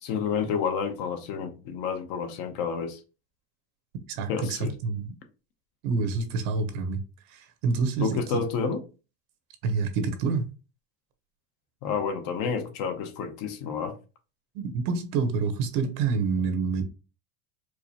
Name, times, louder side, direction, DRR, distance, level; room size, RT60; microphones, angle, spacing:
voice 1, 0.0-3.0 4.3-4.7 8.0-8.8 11.8-13.9, left 6 dB, 50° left, 0.8 m, -29 dB
voice 2, 4.2-5.1 5.8-7.0 7.3-8.4 9.6-10.5 14.5-16.8, right 4 dB, 75° right, 1.0 m, -27 dB
4.7 x 2.1 x 2.8 m
supercardioid pair, 140°, 46 cm